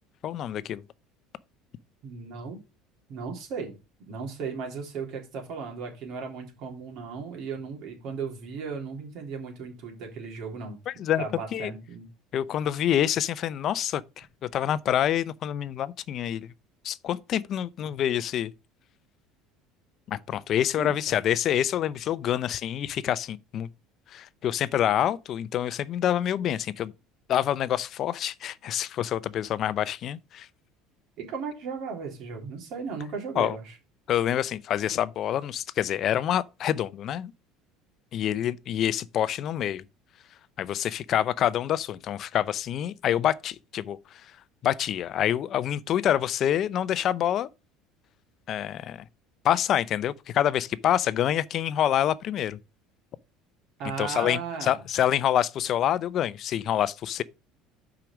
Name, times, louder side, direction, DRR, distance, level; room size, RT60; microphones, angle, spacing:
voice 1, 0.2-0.8 10.9-11.7 12.3-16.5 16.8-18.5 20.1-23.7 24.1-26.9 27.3-30.5 33.4-33.6 34.1-37.3 38.1-39.8 40.6-44.0 44.6-47.5 48.5-49.0 49.4-52.6 54.0-57.2, left 11 dB, 40° left, 0.5 m, -27 dB
voice 2, 2.0-2.6 3.1-10.8 11.2-12.1 20.7-21.2 31.2-33.7 53.8-54.8, right 5 dB, 55° right, 3.2 m, -36 dB
6.0 x 5.0 x 5.9 m
cardioid pair, 140°, 0 cm